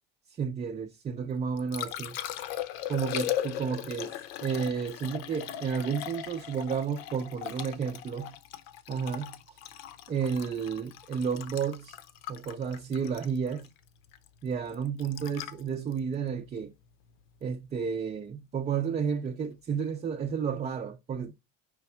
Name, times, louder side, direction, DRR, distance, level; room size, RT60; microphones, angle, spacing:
voice 1, 0.3-2.2 2.9-4.1 4.4-8.4 8.9-9.6 10.1-12.0 12.3-13.7 14.4-16.7 17.4-21.3, right 6 dB, 25° right, 0.5 m, -32 dB
Liquid, 1.3-17.4 20.2-20.3, left 11 dB, 80° left, 0.8 m, -39 dB
5.1 x 3.5 x 5.5 m
supercardioid pair, 125°, 29 cm